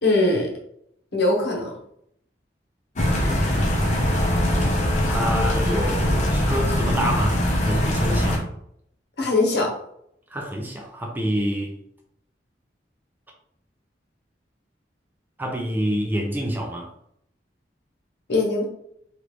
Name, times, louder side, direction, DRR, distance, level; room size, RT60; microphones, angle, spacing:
voice 1, 0.0-0.5 1.1-1.7 9.2-9.7 18.3-18.7, left 2 dB, 65° left, -1 dB, 1.0 m, -21 dB
sound 1, 3.0-8.4, equal, 40° left, 0.6 m, -22 dB
voice 2, 3.1-4.0 5.0-7.4 7.7-8.4 10.3-11.7 15.4-16.9, equal, 10° right, 0 dB, 0.4 m, -27 dB
3.4 x 2.5 x 3.0 m, 0.72 s
head